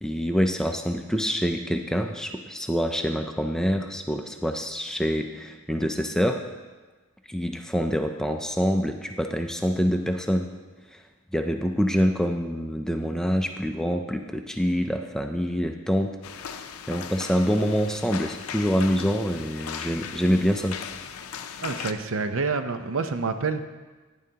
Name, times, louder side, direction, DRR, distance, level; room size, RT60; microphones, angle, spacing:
voice 1, 0.0-6.4 7.3-10.5 10.9-11.0 11.3-16.5 16.9-20.8, equal, 5° left, 5 dB, 0.4 m, -26 dB
sound 1, 16.2-21.9, left 7 dB, 80° left, 0.5 m, -38 dB
voice 2, 21.6-23.7, right 4 dB, 65° right, 8 dB, 0.6 m, -27 dB
11.0 x 10.0 x 2.8 m, 1.3 s
head